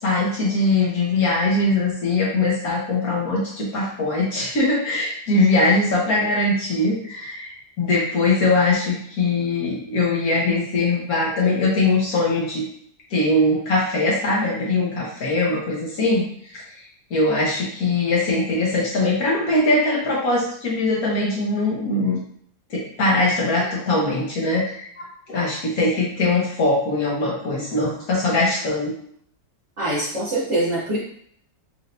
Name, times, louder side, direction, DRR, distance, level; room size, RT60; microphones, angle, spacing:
voice 1, 0.0-12.6 13.1-16.3 16.5-22.2 22.7-28.9, left 2 dB, 55° left, -4 dB, 1.5 m, -21 dB
voice 2, 29.8-31.0, right 1 dB, 50° right, -7 dB, 1.0 m, -23 dB
4.4 x 3.5 x 2.6 m, 0.64 s
omnidirectional pair, 2.0 m